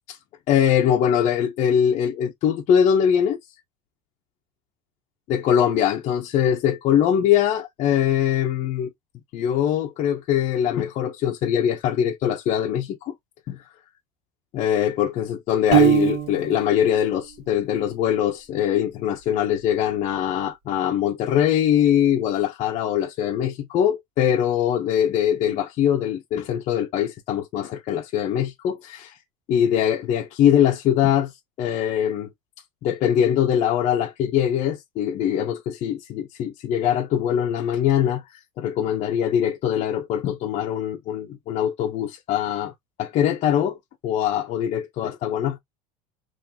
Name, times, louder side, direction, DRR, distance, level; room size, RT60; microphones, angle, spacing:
voice 1, 0.5-3.4 5.3-8.9 9.3-13.1 13.5-13.6 14.5-29.2 29.5-31.3 31.6-32.3 32.8-38.2 38.6-42.7 43.0-43.8 44.0-45.6, left 9 dB, 40° left, 0.7 m, -22 dB
Piano, 15.7-16.7, right 13 dB, 60° right, 2.1 m, -19 dB
3.8 x 2.6 x 2.8 m
cardioid pair, 160°, 18 cm